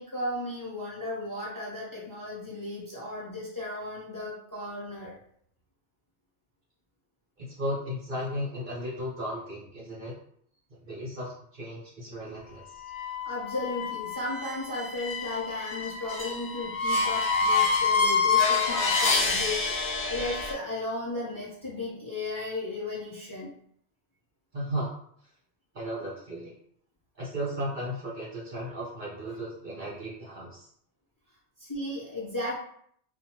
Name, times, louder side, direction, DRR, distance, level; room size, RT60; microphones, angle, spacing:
voice 1, 0.0-5.2 13.2-23.5 31.6-32.6, left 2 dB, 20° left, -7 dB, 0.9 m, -35 dB
voice 2, 7.4-10.1 10.8-12.8 24.5-24.9 25.7-26.5 27.1-30.7, equal, 45° right, -7 dB, 0.9 m, -35 dB
sound 1, 12.8-20.5, left 4 dB, 60° left, 0.4 m, -27 dB
2.6 x 2.2 x 2.9 m, 0.66 s
omnidirectional pair, 1.2 m